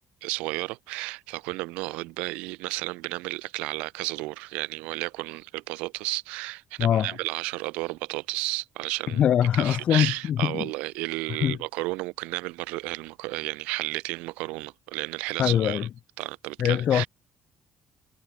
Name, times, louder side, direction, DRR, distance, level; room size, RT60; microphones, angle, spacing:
voice 1, 0.2-9.2 9.5-15.9 16.2-17.1, right 23 dB, 80° right, 3.2 m, -32 dB
voice 2, 6.8-7.1 9.1-10.7 11.4-11.6 15.4-15.9 16.6-17.0, left 10 dB, 60° left, 0.8 m, -23 dB
hypercardioid pair, 55°, 2 cm